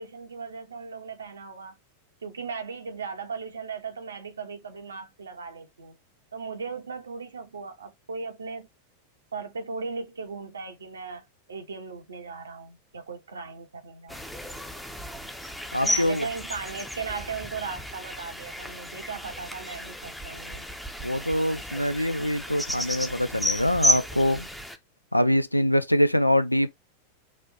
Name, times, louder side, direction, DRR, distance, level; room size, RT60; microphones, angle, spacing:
voice 1, 0.0-1.8 2.2-6.0 6.3-8.7 9.3-14.2 15.8-20.7, right 5 dB, 70° right, 1.1 m, -37 dB
sound 1, 14.1-24.8, equal, ahead, 0.7 m, -32 dB
voice 2, 15.7-16.3 21.0-24.5 25.1-26.7, equal, 90° left, 0.5 m, -24 dB
6.2 x 2.6 x 2.8 m
figure-of-eight pair, 90°, 0 cm